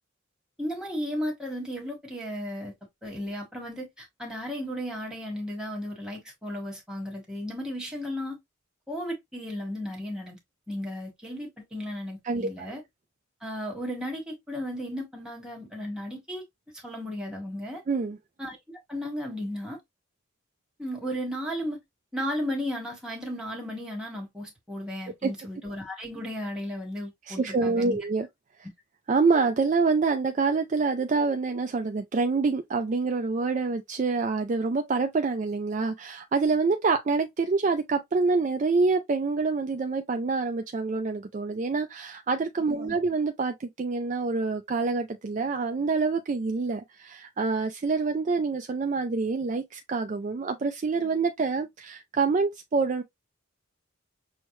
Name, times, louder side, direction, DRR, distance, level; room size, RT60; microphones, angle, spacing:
voice 1, 0.6-2.7 3.0-8.4 8.9-10.4 10.7-12.8 13.4-16.4 16.7-17.8 18.4-18.6 18.9-19.8 20.8-21.8 22.1-28.0 42.7-42.9, equal, 5° right, 1.4 m, -34 dB
voice 2, 12.2-12.7 17.9-18.2 25.2-25.3 27.3-28.3 29.1-53.0, right 4 dB, 35° right, 0.3 m, -26 dB
6.2 x 2.1 x 3.1 m
head